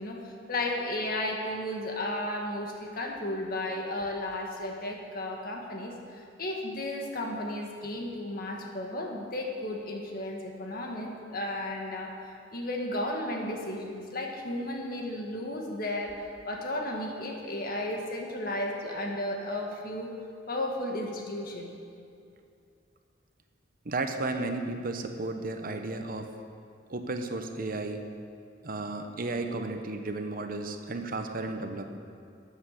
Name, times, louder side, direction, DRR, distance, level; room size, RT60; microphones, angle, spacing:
voice 1, 0.0-12.1 12.5-16.2 16.4-20.1 20.5-21.7, left 1 dB, 55° left, 1 dB, 1.7 m, -34 dB
voice 2, 23.8-26.3 26.9-28.0 28.6-32.0, right 2 dB, 50° right, 6 dB, 0.9 m, -33 dB
13.0 x 8.4 x 6.6 m, 2.5 s
head